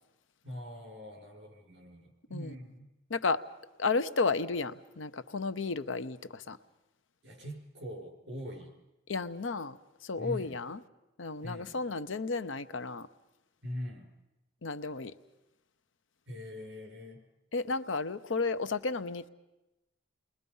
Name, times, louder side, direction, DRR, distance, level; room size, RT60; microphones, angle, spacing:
voice 1, 0.4-2.9 7.2-8.7 10.2-10.6 11.4-11.8 13.6-14.1 16.3-17.2, equal, 65° right, 5.9 m, -42 dB
voice 2, 3.1-3.4 3.8-6.6 9.1-9.8 10.0-10.8 11.2-13.1 14.6-15.1 17.5-19.3, left 4 dB, 80° left, 0.8 m, -33 dB
29.0 x 21.5 x 5.5 m
head